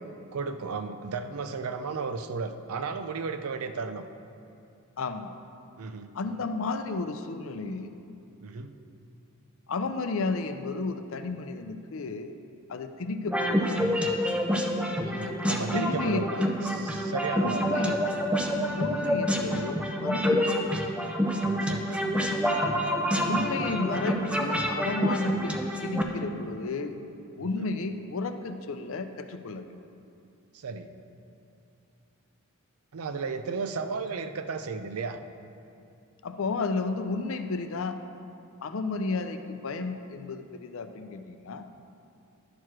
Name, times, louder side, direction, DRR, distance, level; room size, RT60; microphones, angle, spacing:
voice 1, 0.3-4.1 5.8-6.1 8.4-8.7 15.0-18.0 21.7-22.0 27.4-27.7 30.5-30.9 32.9-35.2, right 4 dB, 85° right, 9 dB, 0.5 m, -34 dB
voice 2, 5.0-5.3 6.1-7.9 9.7-12.3 12.7-13.8 15.7-16.5 17.4-18.1 18.7-20.7 23.3-27.0 27.4-29.7 36.2-38.0 38.6-41.7, left 3 dB, 65° left, 8 dB, 0.5 m, -32 dB
sound 1, 13.3-26.0, equal, 5° right, 0.5 m, -27 dB
11.0 x 4.7 x 6.1 m, 2.6 s
head